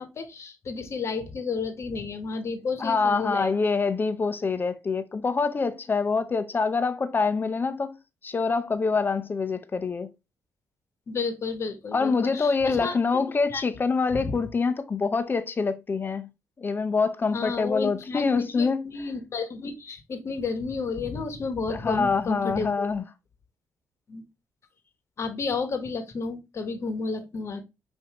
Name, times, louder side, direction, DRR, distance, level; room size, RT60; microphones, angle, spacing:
voice 1, 0.0-3.5 11.1-13.0 13.5-13.6 14.1-14.3 17.3-22.9 24.1-24.2 25.2-27.6, left 4 dB, 50° left, 1.1 m, -32 dB
voice 2, 2.8-8.0 8.2-10.1 11.9-16.3 16.6-18.8 21.7-23.0, left 4 dB, 35° left, 0.7 m, -25 dB
5.6 x 2.7 x 2.9 m
supercardioid pair, 65°, 6 cm